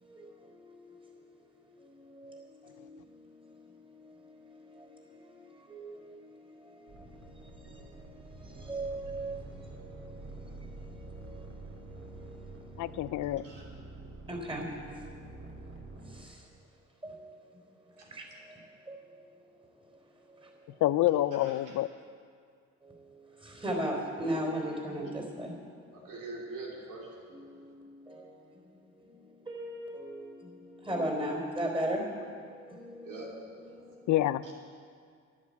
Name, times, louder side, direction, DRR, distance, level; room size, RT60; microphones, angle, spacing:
voice 1, 0.0-0.9 2.1-5.3 5.7-11.4 11.8-13.0 14.3-14.8 16.1-16.4 17.0-17.4 18.1-18.6 18.9-19.0 22.8-22.9 23.4-25.6 27.3-28.5 29.2-33.2 33.7-33.9, right 1 dB, 15° right, 2 dB, 3.5 m, -39 dB
sound 1, 6.9-16.2, right 2 dB, 50° right, 3.1 m, -47 dB
voice 2, 12.8-13.4 20.8-21.9 34.1-34.4, left 14 dB, 70° left, 16 dB, 0.5 m, -27 dB
voice 3, 13.3-13.7 18.0-18.1 21.4-21.8 25.9-27.3 33.0-33.3 34.4-34.5, right 3 dB, 90° right, -2 dB, 3.2 m, -44 dB
11.0 x 10.5 x 8.4 m, 2.2 s
cardioid pair, 90°, 30 cm